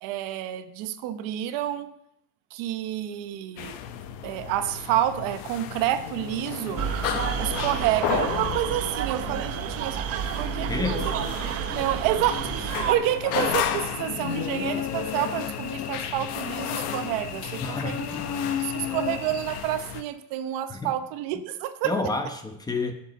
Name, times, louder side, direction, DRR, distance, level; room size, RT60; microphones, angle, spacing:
voice 1, 0.0-2.0 2.5-3.8 4.2-6.9 7.4-10.0 10.4-11.1 11.7-18.1 18.5-21.9, right 12 dB, 70° right, 10 dB, 1.0 m, -29 dB
sound 1, 3.6-20.0, left 9 dB, 70° left, 1.0 m, -33 dB
sound 2, 6.8-12.9, right 9 dB, 45° right, 0.8 m, -30 dB
voice 2, 10.7-11.0 17.6-19.0 20.7-20.9 21.8-22.9, left 3 dB, 10° left, 5 dB, 1.0 m, -31 dB
Cricket / Buzz, 13.4-19.6, left 8 dB, 50° left, 1.3 m, -34 dB
7.5 x 6.6 x 7.9 m, 0.77 s
cardioid pair, 145°, 35 cm